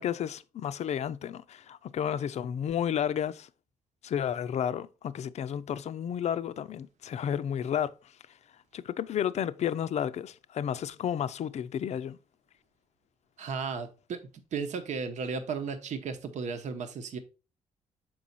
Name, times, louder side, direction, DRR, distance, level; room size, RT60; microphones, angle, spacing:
voice 1, 0.0-3.5 4.0-7.9 8.7-12.2, left 9 dB, 60° left, 0.5 m, -32 dB
voice 2, 13.4-14.2 14.5-17.2, right 5 dB, 70° right, 0.9 m, -34 dB
6.1 x 4.7 x 4.0 m
cardioid pair, 75°, 13 cm